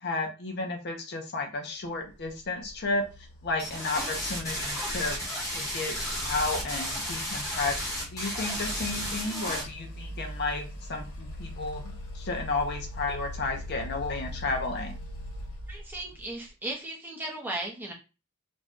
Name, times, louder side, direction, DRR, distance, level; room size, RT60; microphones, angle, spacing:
voice 1, 0.0-3.0 3.4-5.2 5.5-6.0 6.2-14.9, left 3 dB, 50° left, 3 dB, 0.6 m, -32 dB
sound 1, 2.0-16.5, left 1 dB, 75° left, 1.2 m, -42 dB
sound 2, 3.6-9.6, equal, 15° left, 1.0 m, -33 dB
voice 2, 15.7-17.9, right 1 dB, 10° right, -1 dB, 0.6 m, -36 dB
2.6 x 2.2 x 3.5 m, 0.31 s
head